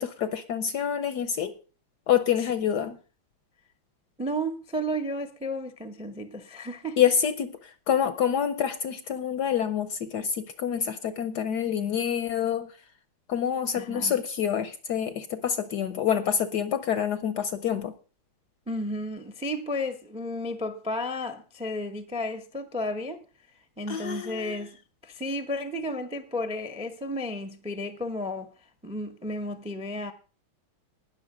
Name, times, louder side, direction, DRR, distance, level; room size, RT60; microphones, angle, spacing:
voice 1, 0.0-1.5 2.1-3.0 7.0-12.7 13.3-17.9 23.9-24.6, left 8 dB, 65° left, 1.1 m, -27 dB
voice 2, 4.2-7.0 13.7-14.1 18.7-23.2 23.8-24.8 25.0-28.5 28.8-30.1, left 1 dB, 5° right, 0.5 m, -33 dB
19.0 x 6.6 x 5.0 m
omnidirectional pair, 2.3 m